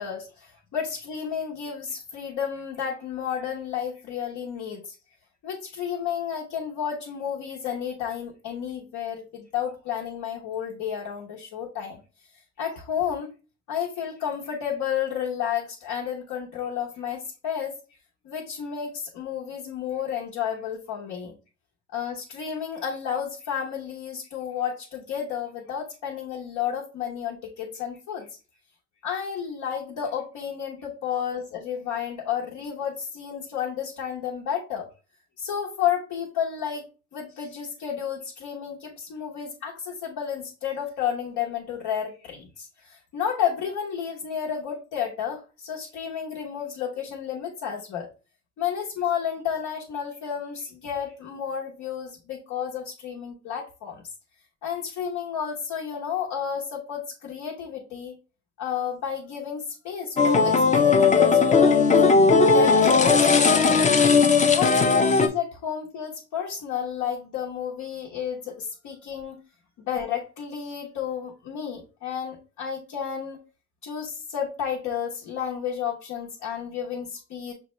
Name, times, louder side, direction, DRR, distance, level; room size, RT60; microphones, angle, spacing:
voice 1, 0.0-5.0 5.4-12.0 12.6-13.3 13.7-17.7 18.2-21.3 21.9-28.3 29.0-34.9 35.4-36.9 37.1-48.1 48.6-54.0 54.6-58.1 58.6-62.0 62.4-63.8 64.4-69.4 69.8-73.4 73.8-77.5, left 8 dB, 85° left, -3 dB, 0.9 m, -31 dB
sound 1, 60.2-65.3, left 4 dB, 25° left, 0.4 m, -18 dB
6.2 x 2.2 x 3.0 m, 0.33 s
cardioid pair, 90°, 30 cm